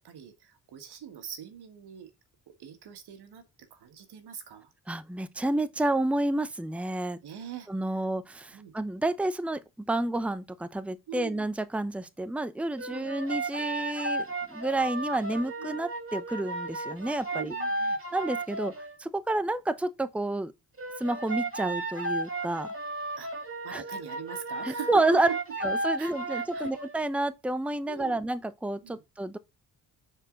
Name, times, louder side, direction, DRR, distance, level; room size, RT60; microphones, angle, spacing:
voice 1, 0.0-2.1 2.6-3.4 3.7-4.7 7.2-8.1 8.5-8.7 11.1-11.5 12.9-13.1 15.6-15.8 17.3-18.0 23.2-23.3 23.6-25.0 25.3-25.4 26.0-26.7 27.8-28.2 28.8-29.0, right 9 dB, 70° right, 1.7 m, -42 dB
voice 2, 4.9-7.2 7.7-14.2 14.5-17.5 18.1-18.7 19.0-20.5 21.0-22.7 23.7-23.8 24.6-25.3 25.6-29.4, right 2 dB, 5° right, 0.8 m, -29 dB
sound 1, 12.8-19.0 20.8-27.0, right 2 dB, 35° right, 3.8 m, -34 dB
9.7 x 4.5 x 3.8 m
supercardioid pair, 60°, 40 cm